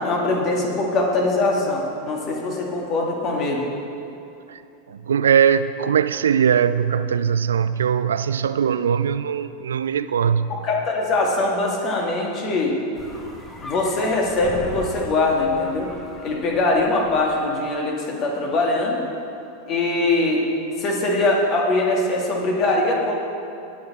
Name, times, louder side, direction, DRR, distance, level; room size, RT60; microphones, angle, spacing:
voice 1, 0.0-3.6 10.5-12.8 13.6-15.9 16.2-19.0 19.7-20.4 20.8-23.1, left 2 dB, 40° left, -1 dB, 2.2 m, -22 dB
voice 2, 4.9-10.5, right 8 dB, 75° right, 13 dB, 0.3 m, -20 dB
sound 1, 12.9-17.5, left 1 dB, 20° left, 1.8 m, -39 dB
19.5 x 6.6 x 4.2 m, 2.7 s
figure-of-eight pair, 90°, 0 cm